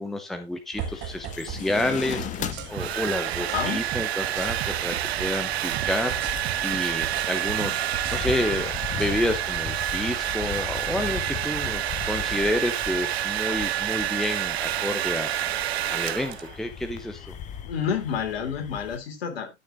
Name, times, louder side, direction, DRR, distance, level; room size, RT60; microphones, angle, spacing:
voice 1, 0.0-15.6 15.9-17.4, left 1 dB, ahead, 7 dB, 1.0 m, -30 dB
sound 1, 0.7-19.0, left 9 dB, 20° left, 1.1 m, -38 dB
sound 2, 0.8-1.7 1.9-5.5 5.7-9.1 13.9-14.3 14.9-15.4 15.8-16.4, right 9 dB, 30° right, 1.9 m, -37 dB
Domestic sounds home sounds, 2.3-16.6, right 12 dB, 65° right, 0.5 m, -28 dB
voice 2, 3.5-3.8 17.6-19.6, left 7 dB, 55° left, 5 dB, 3.4 m, -29 dB
12.5 x 6.8 x 3.7 m, 0.23 s
figure-of-eight pair, 100°, 35 cm